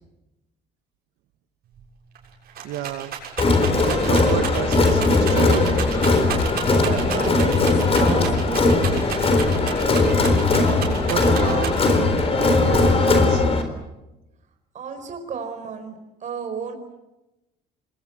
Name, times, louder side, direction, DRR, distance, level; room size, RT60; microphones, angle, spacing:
Rattle, 1.8-1.9 2.2-12.1 12.7-13.3, right 8 dB, 65° right, 7.0 m, -33 dB
voice 1, 2.6-3.1 3.8-5.6 11.0-12.1 12.4-13.4, right 11 dB, 85° right, 11 dB, 1.7 m, -30 dB
Crowd, 3.4-13.6, left 3 dB, 35° left, 3.9 m, -19 dB
voice 2, 6.7-8.8 14.7-16.7, right 5 dB, 45° right, 6 dB, 4.6 m, -32 dB
26.0 x 22.5 x 8.0 m, 0.97 s
cardioid pair, 110°, 17 cm